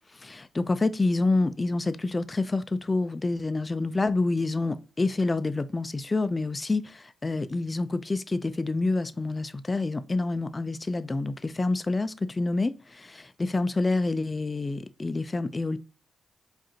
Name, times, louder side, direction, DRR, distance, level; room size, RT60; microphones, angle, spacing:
voice 1, 0.2-15.8, left 3 dB, 30° left, 0.4 m, -27 dB
4.9 x 2.5 x 2.8 m
cardioid pair, 65°, 0 cm